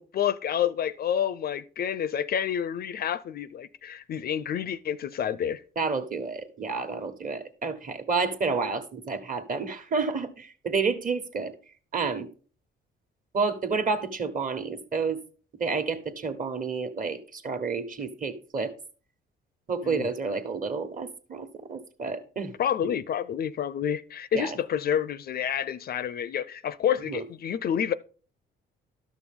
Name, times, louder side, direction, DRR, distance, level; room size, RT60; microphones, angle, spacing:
voice 1, 0.0-5.6 19.8-20.1 22.6-27.9, left 9 dB, 50° left, 0.4 m, -29 dB
voice 2, 5.8-11.5 11.9-12.3 13.3-15.2 15.6-18.7 19.7-22.5 24.3-24.6 27.1-27.2, right 4 dB, 45° right, 1.3 m, -30 dB
12.0 x 6.1 x 3.6 m
cardioid pair, 90°, 20 cm